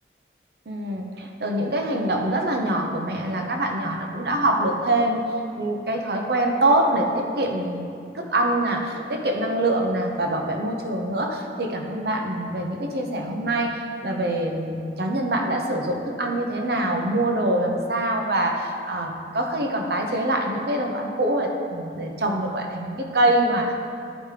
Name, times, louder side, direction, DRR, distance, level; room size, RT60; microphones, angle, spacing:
voice 1, 0.7-5.2 5.6-7.9 8.1-23.7, right 1 dB, 65° right, 2 dB, 0.9 m, -24 dB
12.0 x 5.1 x 3.3 m, 2.5 s
head